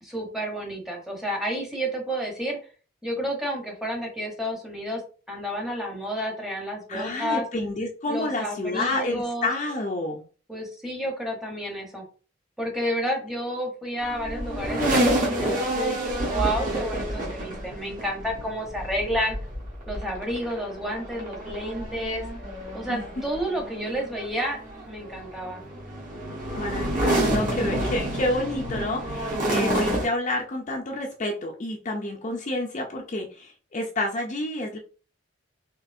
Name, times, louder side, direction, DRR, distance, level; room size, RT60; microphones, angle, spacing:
voice 1, 0.0-2.6 3.0-5.0 5.3-7.4 8.1-9.5 10.5-12.0 12.6-19.4 19.9-22.3 22.7-24.6 24.9-25.6 27.4-27.9, equal, ahead, 0 dB, 0.9 m, -30 dB
voice 2, 6.9-10.2 22.9-23.1 26.6-34.8, left 1 dB, 35° left, 1 dB, 0.5 m, -29 dB
sound 1, 14.0-30.1, right 1 dB, 40° right, 1.4 m, -29 dB
4.1 x 3.0 x 2.6 m, 0.38 s
head